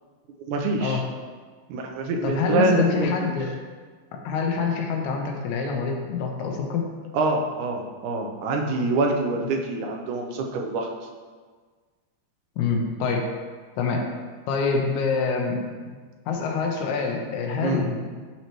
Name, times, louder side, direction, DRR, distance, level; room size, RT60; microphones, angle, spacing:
voice 1, 0.5-1.0 1.7-3.3 7.1-10.9 17.6-17.8, right 2 dB, 90° right, 2 dB, 2.2 m, -25 dB
voice 2, 2.2-3.6 4.1-6.9 12.6-13.3 13.8-14.1 14.5-15.6 16.3-18.1, left 5 dB, 75° left, 2 dB, 2.2 m, -26 dB
11.5 x 4.4 x 3.0 m, 1.5 s
omnidirectional pair, 3.5 m